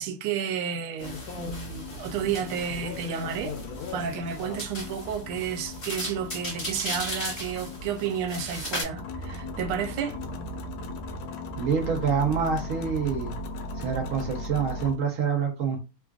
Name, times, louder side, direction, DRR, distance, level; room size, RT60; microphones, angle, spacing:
voice 1, 0.0-3.6 3.9-10.2, right 7 dB, 80° right, 1.4 m, -31 dB
sound 1, 1.0-15.0, left 1 dB, 75° left, 1.3 m, -37 dB
sound 2, 1.0-8.8, left 1 dB, 35° left, 1.5 m, -37 dB
voice 2, 11.6-13.3 13.8-15.8, right 6 dB, 60° right, 0.8 m, -26 dB
3.6 x 2.4 x 2.3 m
omnidirectional pair, 2.4 m